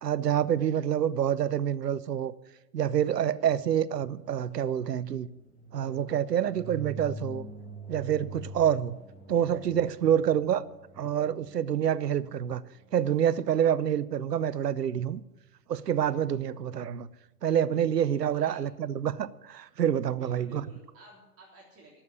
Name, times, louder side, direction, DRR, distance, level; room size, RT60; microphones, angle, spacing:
voice 1, 0.0-2.3 2.7-5.3 5.7-7.5 7.9-9.0 9.3-10.7 11.0-12.6 12.9-15.2 15.7-17.1 17.4-20.6, right 9 dB, 85° right, 0.8 m, -27 dB
sound 1, 4.1-13.3, right 3 dB, 15° left, 4.2 m, -45 dB
voice 2, 18.3-18.6 20.1-22.0, right 3 dB, 30° right, 3.5 m, -53 dB
12.0 x 7.3 x 9.8 m
hypercardioid pair, 110°, 47 cm